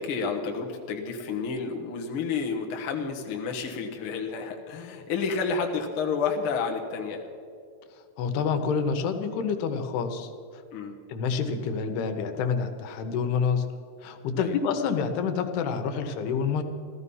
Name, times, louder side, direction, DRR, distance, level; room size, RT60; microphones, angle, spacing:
voice 1, 0.0-7.2 10.7-11.0 14.4-14.6, left 5 dB, 70° left, 2 dB, 1.2 m, -30 dB
voice 2, 8.2-10.3 11.1-13.7 14.0-16.6, left 6 dB, 85° left, 7 dB, 3.1 m, -27 dB
15.0 x 14.0 x 5.5 m, 2.4 s
omnidirectional pair, 4.5 m